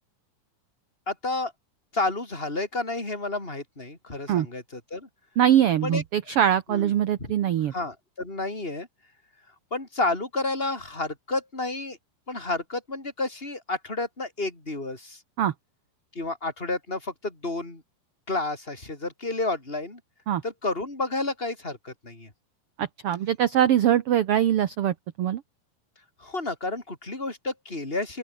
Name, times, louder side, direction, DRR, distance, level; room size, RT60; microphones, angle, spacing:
voice 1, 1.1-1.5 1.9-5.1 5.8-6.0 6.7-6.9 7.2-7.3 7.7-8.9 9.7-12.0 12.3-15.2 16.2-17.8 18.3-20.0 20.4-22.3 26.2-28.2, left 2 dB, 15° left, 5.4 m, -30 dB
voice 2, 5.4-7.7 15.4-15.5 20.3-20.4 22.8-25.4, right 10 dB, 60° right, 1.5 m, -22 dB
open air
omnidirectional pair, 3.8 m